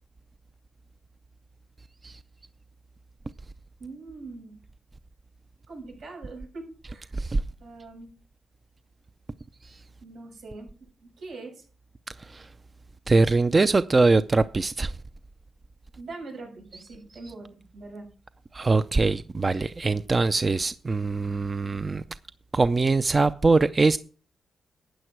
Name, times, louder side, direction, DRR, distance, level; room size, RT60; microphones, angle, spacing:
voice 1, 3.8-4.6 5.7-7.1 7.6-8.1 10.0-11.7 16.0-18.1, right 3 dB, 80° right, 7.1 m, -42 dB
voice 2, 13.1-14.9 18.5-22.0 22.5-24.0, right 3 dB, 30° right, 0.5 m, -22 dB
12.5 x 9.2 x 4.6 m
cardioid pair, 100°, 0 cm